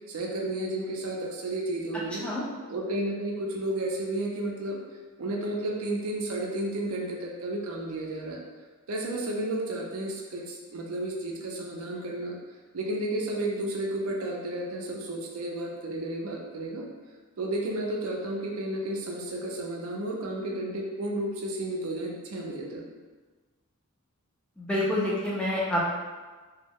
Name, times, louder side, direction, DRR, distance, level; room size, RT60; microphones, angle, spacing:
voice 1, 0.1-2.3 2.7-4.8 5.2-8.4 8.9-12.4 12.7-16.9 17.4-22.8, right 1 dB, 80° right, -1 dB, 0.5 m, -32 dB
voice 2, 24.6-25.8, left 1 dB, 5° left, -6 dB, 0.4 m, -27 dB
2.3 x 2.1 x 3.4 m, 1.3 s
head